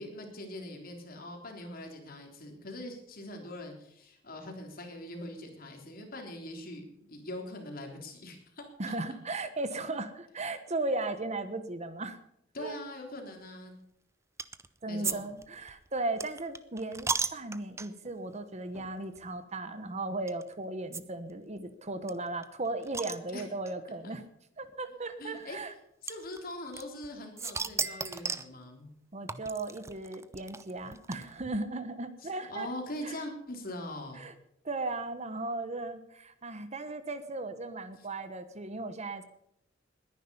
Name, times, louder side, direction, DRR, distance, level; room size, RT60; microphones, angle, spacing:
voice 1, 0.0-8.9 12.5-13.7 14.9-15.3 23.3-23.4 24.0-24.2 25.2-25.6 26.0-28.9 32.2-34.3, left 1 dB, 50° left, 3 dB, 3.6 m, -42 dB
voice 2, 8.8-12.2 12.6-12.7 14.8-24.2 24.6-25.7 29.1-32.7 33.0-33.2 34.1-34.3 34.6-39.2, right 2 dB, 35° right, 11 dB, 1.2 m, -36 dB
sound 1, 14.4-14.7 15.0-15.2 15.4-18.1 18.7-18.9 19.1-19.2 20.3-20.4 20.9-21.0 21.3-21.4 21.6-21.7 22.1-23.7 24.6-24.7 26.1-27.1 27.4-28.5 29.3-31.6, right 4 dB, 15° right, 0.7 m, -35 dB
21.0 x 10.5 x 5.5 m, 0.75 s
head